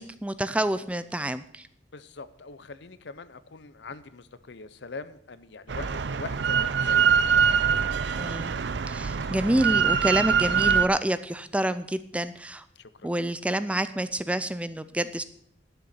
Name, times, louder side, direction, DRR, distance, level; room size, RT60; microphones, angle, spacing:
voice 1, 0.0-1.7 8.2-8.5 8.9-12.6 13.0-15.2, right 1 dB, 5° right, 13 dB, 0.4 m, -28 dB
voice 2, 1.9-7.2 7.6-8.0 9.1-9.3 12.8-13.3, left 4 dB, 65° left, 14 dB, 0.7 m, -43 dB
Drill, 5.7-10.9, right 7 dB, 65° right, 0.5 m, -24 dB
11.5 x 6.9 x 7.8 m, 0.69 s
head